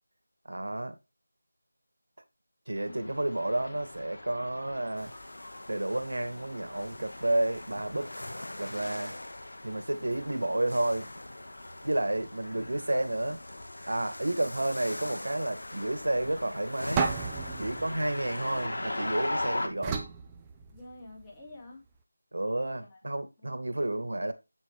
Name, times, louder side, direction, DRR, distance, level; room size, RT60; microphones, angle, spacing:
voice 1, 0.5-1.0 2.7-5.1 5.7-8.1 8.6-9.2 9.6-11.1 11.8-13.4 13.9-17.1 17.6-20.0 22.3-24.3, right 1 dB, 75° right, 2.1 m, -31 dB
sound 1, 2.8-19.7, left 1 dB, 60° left, 3.4 m, -41 dB
voice 2, 2.8-3.2 20.7-21.8 22.8-23.1 23.4-24.0, left 2 dB, 10° left, 2.3 m, -49 dB
sound 2, 5.0-18.7, left 1 dB, 85° left, 0.9 m, -45 dB
sound 3, 17.0-19.2 19.8-21.2, right 5 dB, 10° right, 0.6 m, -34 dB
8.2 x 6.5 x 4.8 m
figure-of-eight pair, 175°, 0 cm